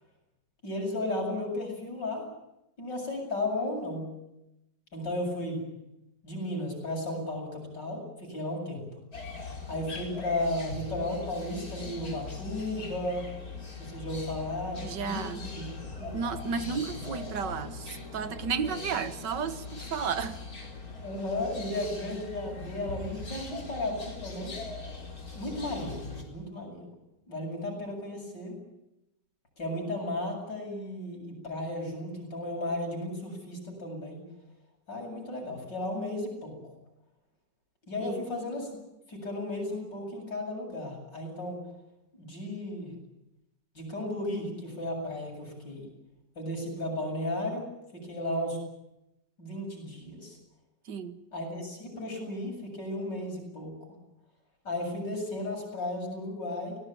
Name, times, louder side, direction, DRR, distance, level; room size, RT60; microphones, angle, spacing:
voice 1, 0.6-2.2 2.8-4.1 4.9-5.6 6.2-8.8 9.7-13.3 13.8-15.7 16.0-16.1 18.6-18.8 21.0-24.6 25.4-26.9 27.3-28.6 29.6-34.2 34.9-36.6 37.9-38.7 39.1-41.6 42.1-43.0 43.8-45.9 46.4-47.6 47.9-48.6 49.4-50.4 51.3-53.7 54.7-56.8, left 1 dB, 80° left, 8.6 m, -34 dB
sound 1, 9.1-26.2, left 3 dB, 55° left, 5.0 m, -41 dB
voice 2, 14.8-15.5 16.1-20.4 38.0-38.2 50.9-51.2, right 6 dB, 80° right, 2.0 m, -33 dB
24.5 x 19.0 x 8.8 m
omnidirectional pair, 1.9 m